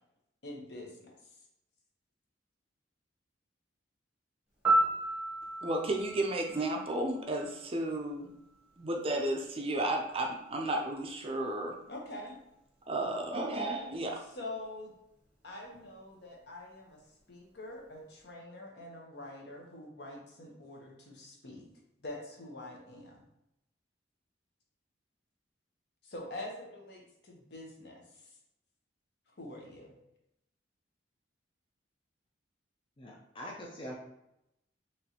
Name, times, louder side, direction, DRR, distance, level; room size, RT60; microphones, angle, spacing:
voice 1, 0.4-1.1 11.9-12.4 14.3-14.9 15.4-17.0 17.3-21.7 22.0-23.2 26.0-28.3 29.4-29.9, left 1 dB, 60° left, 0 dB, 0.9 m, -45 dB
Piano, 4.6-7.6 15.7-15.9, right 1 dB, 5° right, 1.0 m, -32 dB
voice 2, 5.6-8.3 8.8-11.7 12.9-14.2, right 1 dB, 30° right, 2 dB, 0.4 m, -33 dB
voice 3, 33.0-33.9, equal, 25° left, -2 dB, 0.5 m, -43 dB
4.2 x 3.1 x 2.8 m, 0.84 s
head